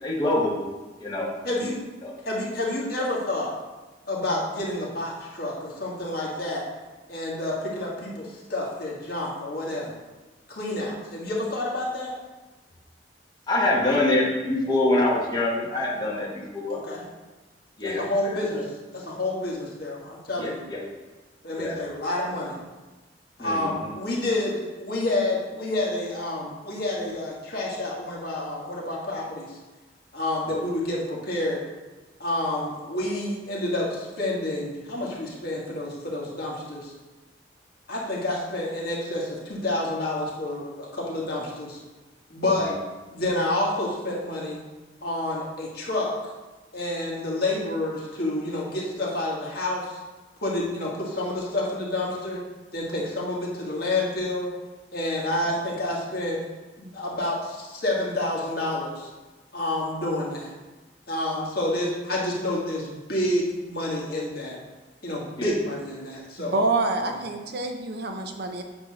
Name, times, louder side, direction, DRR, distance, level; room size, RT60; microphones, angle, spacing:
voice 1, 0.0-0.6 1.0-1.7 2.0-2.1 13.5-16.8 17.8-18.6 20.4-20.8 21.5-21.8 23.4-23.9 30.5-30.6 42.4-42.7 65.4-65.6, left 2 dB, 25° left, -3 dB, 1.3 m, -26 dB
voice 2, 1.4-1.8 2.2-3.5 4.1-6.7 7.1-10.0 10.5-12.1 16.1-16.2 16.7-17.0 17.8-20.6 21.4-22.6 23.4-29.6 30.1-31.6 32.2-36.9 37.9-41.8 42.3-42.7 43.1-44.6 45.0-46.1 46.7-50.0 50.4-52.4 52.7-54.5 54.9-56.4 56.8-59.1 59.5-60.5 61.1-64.6 65.0-66.5 67.0-67.1, left 1 dB, 60° left, -4 dB, 1.6 m, -29 dB
voice 3, 66.4-68.6, right 2 dB, 65° right, 4 dB, 0.7 m, -27 dB
8.5 x 2.9 x 6.0 m, 1.2 s
head